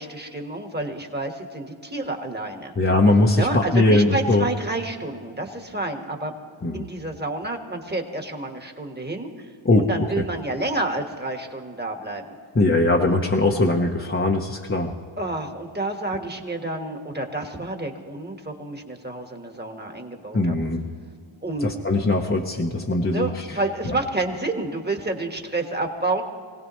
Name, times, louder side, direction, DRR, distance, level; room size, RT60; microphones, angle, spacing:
voice 1, 0.0-2.7 3.3-6.3 6.7-9.5 9.8-12.4 13.0-13.2 15.2-20.5 21.4-21.7 23.1-26.2, right 2 dB, 20° right, 4 dB, 1.6 m, -29 dB
voice 2, 2.8-4.5 6.6-6.9 9.6-9.9 10.2-10.3 12.5-15.0 20.3-20.8 21.6-23.6 23.8-24.0, left 2 dB, 25° left, -1 dB, 0.9 m, -20 dB
24.0 x 17.0 x 3.1 m, 2.2 s
wide cardioid pair, 90°, 49 cm